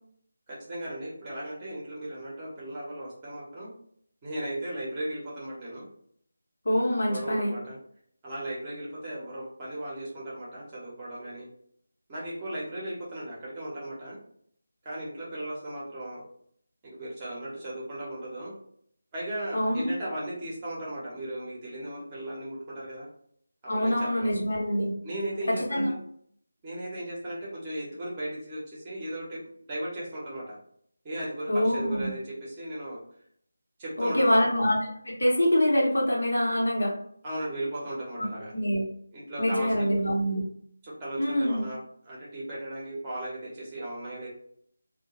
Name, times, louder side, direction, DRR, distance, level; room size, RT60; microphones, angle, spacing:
voice 1, 0.5-3.7 4.2-5.8 7.0-7.8 8.2-11.5 12.1-14.2 14.8-16.2 16.8-18.5 19.1-23.1 23.6-24.3 25.0-26.0 26.6-29.4 29.7-30.5 31.0-33.0 33.8-34.4 37.2-38.5 39.1-39.9 40.8-41.8 42.0-44.3, right 1 dB, 20° right, -6 dB, 0.8 m, -36 dB
voice 2, 6.6-7.5 19.5-19.9 23.7-24.9 25.5-25.9 31.5-32.1 34.0-34.8 35.0-36.9 38.5-38.8 39.4-40.4 41.2-41.6, equal, 65° left, -3 dB, 0.9 m, -25 dB
2.2 x 2.1 x 2.9 m, 0.65 s
figure-of-eight pair, 160°, 0 cm